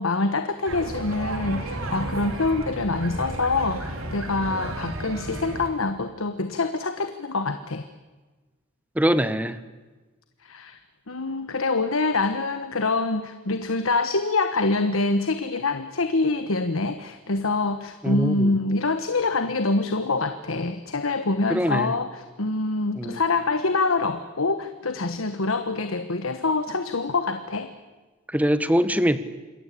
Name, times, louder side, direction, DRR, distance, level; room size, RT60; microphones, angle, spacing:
voice 1, 0.0-7.9 10.4-10.8 11.1-27.7, left 3 dB, 80° left, 9 dB, 1.3 m, -25 dB
sound 1, 0.7-5.7, right 1 dB, 85° right, 3.7 m, -33 dB
voice 2, 8.9-9.6 18.0-18.5 21.5-21.9 23.0-23.2 28.3-29.2, equal, 5° right, 13 dB, 1.2 m, -23 dB
27.0 x 21.0 x 8.5 m, 1.2 s
head